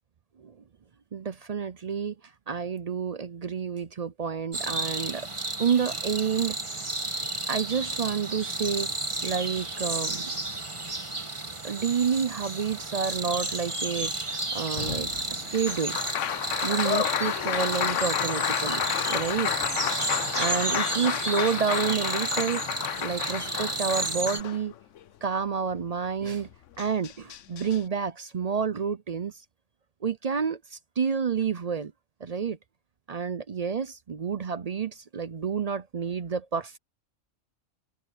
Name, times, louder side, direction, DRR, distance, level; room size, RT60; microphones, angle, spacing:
voice 1, 1.1-2.2 2.5-5.3 5.6-6.6 7.5-8.9 9.2-10.3 11.6-16.0 16.6-18.8 19.1-19.6 20.3-22.6 23.0-24.7 25.2-26.5 26.8-29.4 30.0-31.9 32.2-32.6 33.1-36.8, right 6 dB, 50° right, 0.5 m, -29 dB
sound 1, 4.5-24.4, right 2 dB, 25° right, 1.7 m, -32 dB
Applause, 14.8-25.0 26.4-26.5 26.8-27.8, left 10 dB, 70° left, 1.1 m, -31 dB
omnidirectional pair, 1.3 m